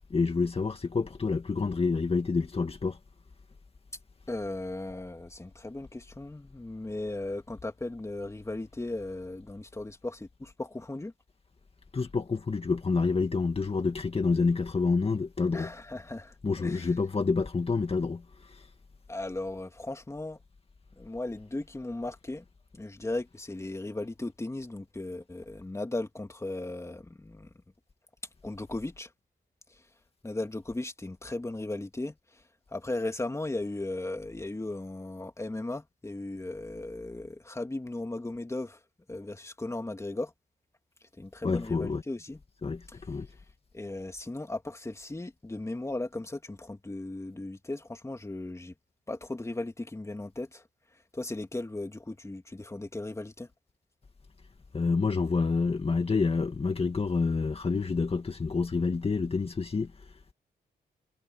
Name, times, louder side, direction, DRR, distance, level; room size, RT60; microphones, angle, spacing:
voice 1, 0.1-3.0 11.9-15.7 16.4-18.7 41.4-42.0 42.6-43.3 54.7-60.3, left 4 dB, 35° left, 2.1 m, -28 dB
voice 2, 4.3-11.1 15.5-16.3 16.6-16.9 19.1-20.4 21.0-22.4 22.7-27.5 28.4-29.1 29.7-29.8 30.2-32.1 32.7-38.8 39.1-40.3 41.2-42.4 43.7-48.7 49.1-50.6 51.1-53.5, left 2 dB, 15° left, 2.6 m, -36 dB
cardioid pair, 80°, 17 cm